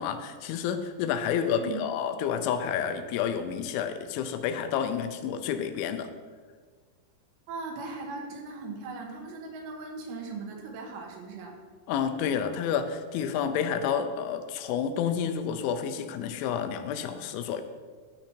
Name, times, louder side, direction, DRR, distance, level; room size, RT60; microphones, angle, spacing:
voice 1, 0.0-6.1 11.9-17.6, left 8 dB, 85° left, 9 dB, 3.1 m, -29 dB
voice 2, 7.5-11.6, right 4 dB, 90° right, 2 dB, 3.7 m, -38 dB
12.5 x 5.9 x 4.4 m, 1.5 s
omnidirectional pair, 5.5 m